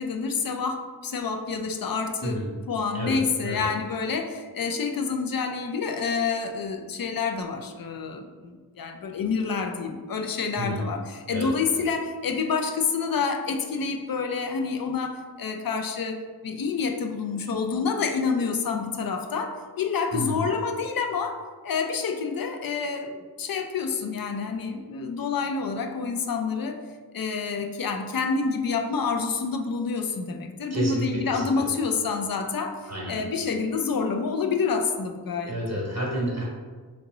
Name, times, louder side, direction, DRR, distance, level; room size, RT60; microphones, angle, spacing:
voice 1, 0.0-26.8 27.1-32.8 33.1-35.8, left 5 dB, 65° left, 5 dB, 0.5 m, -28 dB
voice 2, 2.2-2.5 2.9-3.2 3.4-3.6 10.6-10.8 11.3-11.8 20.1-20.4 30.7-31.7 32.9-33.2 35.5-36.4, right 1 dB, 45° right, -4 dB, 1.4 m, -30 dB
3.5 x 3.0 x 3.8 m, 1.5 s
wide cardioid pair, 75°, 37 cm